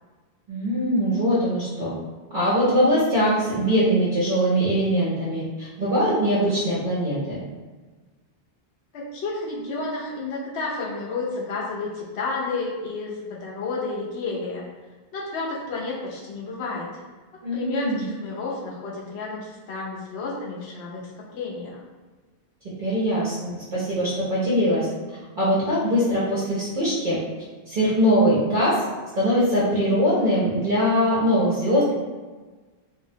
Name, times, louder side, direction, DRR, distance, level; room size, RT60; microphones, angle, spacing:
voice 1, 0.5-1.9 2.3-7.4 17.4-18.0 22.8-24.9 25.4-27.2 27.7-28.8 29.1-31.9, equal, 55° right, -9 dB, 0.8 m, -22 dB
voice 2, 8.9-14.6 15.1-16.9 17.5-21.8, left 3 dB, 90° left, -3 dB, 0.9 m, -31 dB
2.5 x 2.0 x 2.6 m, 1.3 s
omnidirectional pair, 1.1 m